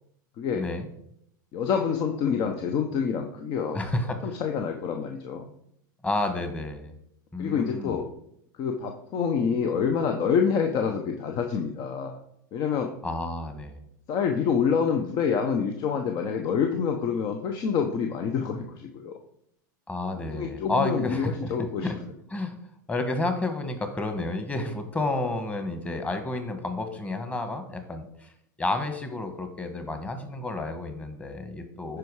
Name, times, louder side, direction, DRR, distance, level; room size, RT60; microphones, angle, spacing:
voice 1, 0.6-0.9 3.7-4.3 6.0-6.9 7.3-8.0 13.0-13.8 19.9-21.9 22.3-22.5 22.9-28.3 28.6-32.0, left 2 dB, 15° left, 7 dB, 1.4 m, -30 dB
voice 2, 1.5-3.8 4.2-5.5 7.4-8.1 8.6-12.2 12.5-12.9 14.1-19.2 20.3-21.9 31.9-32.0, left 6 dB, 45° left, 4 dB, 0.9 m, -27 dB
11.0 x 4.8 x 4.8 m, 0.73 s
hypercardioid pair, 115°, 11 cm